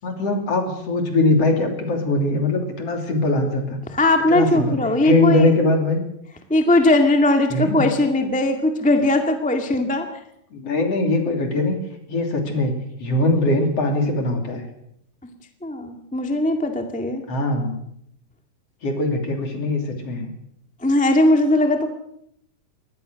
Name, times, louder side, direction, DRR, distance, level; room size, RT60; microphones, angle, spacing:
voice 1, 0.0-3.8 4.3-4.8 5.0-6.0 7.5-7.9 10.5-11.8 12.1-12.7 13.0-14.7 17.3-17.7 18.8-20.3, left 2 dB, 45° left, 4 dB, 3.9 m, -21 dB
voice 2, 3.9-5.5 6.5-10.0 15.6-17.2 20.8-21.9, left 1 dB, 5° left, 5 dB, 0.8 m, -19 dB
22.5 x 18.0 x 6.4 m, 0.73 s
omnidirectional pair, 4.2 m